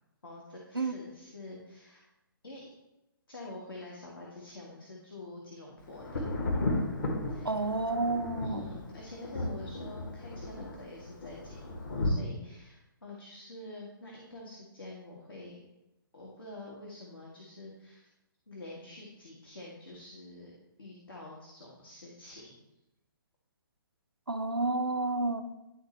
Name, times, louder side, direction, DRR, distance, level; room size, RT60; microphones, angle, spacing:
voice 1, 0.2-2.1 2.4-2.6 3.3-6.3 7.3-7.6 8.4-15.6 16.1-18.1 18.5-20.5 20.8-22.5, left 2 dB, 75° left, -3 dB, 1.7 m, -47 dB
Thunder, 6.0-12.1, left 2 dB, 55° left, 1.5 m, -35 dB
voice 2, 7.4-8.7 24.3-25.4, right 3 dB, 85° right, 8 dB, 0.7 m, -30 dB
11.0 x 4.0 x 3.3 m, 0.94 s
figure-of-eight pair, 130°, 12 cm